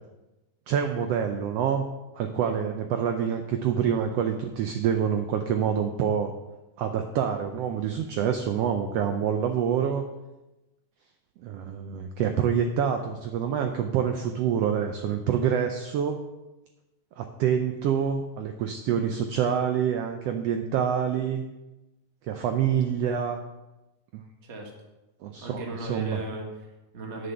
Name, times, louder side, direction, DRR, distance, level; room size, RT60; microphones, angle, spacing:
voice 1, 0.7-1.9 2.2-6.3 6.8-10.0 11.4-16.2 17.2-21.4 22.2-23.4 25.2-25.6 25.9-26.2, right 8 dB, 80° right, 6 dB, 1.4 m, -26 dB
voice 2, 25.4-27.3, right 2 dB, 35° right, 1 dB, 1.1 m, -37 dB
9.3 x 6.6 x 5.7 m, 1.0 s
omnidirectional pair, 3.5 m